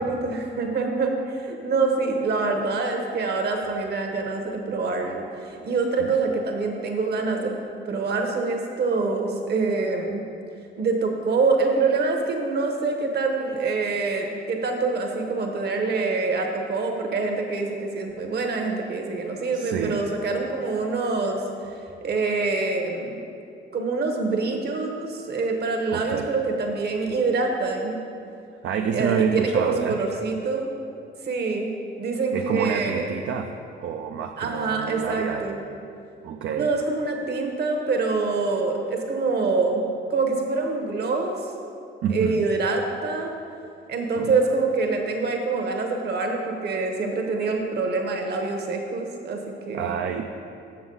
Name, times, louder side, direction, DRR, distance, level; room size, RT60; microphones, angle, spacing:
voice 1, 0.0-7.5 7.9-10.2 10.8-21.4 21.7-23.2 23.7-28.0 28.9-30.7 31.2-31.7 32.0-33.1 34.4-35.6 36.5-39.8 40.1-41.5 42.1-43.3 43.9-49.9, right 3 dB, 55° right, 3 dB, 1.1 m, -25 dB
voice 2, 19.5-20.0 25.9-26.3 28.6-30.0 32.3-35.5 36.2-36.7 42.0-42.4 44.2-44.3 49.7-50.4, right 7 dB, 70° right, 4 dB, 0.4 m, -28 dB
7.1 x 6.9 x 3.9 m, 2.5 s
cardioid pair, 90°, 20 cm